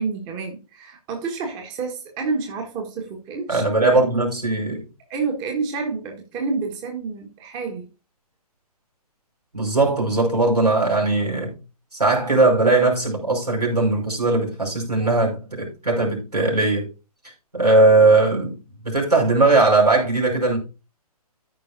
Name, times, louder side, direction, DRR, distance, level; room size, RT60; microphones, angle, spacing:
voice 1, 0.0-4.0 5.1-7.9 15.0-15.2, right 4 dB, 20° right, 1.5 m, -29 dB
voice 2, 3.5-4.9 9.5-11.6 11.9-16.9 17.5-18.6 18.8-20.6, right 2 dB, 90° right, 5.1 m, -19 dB
14.0 x 5.5 x 2.6 m
figure-of-eight pair, 130°, 20 cm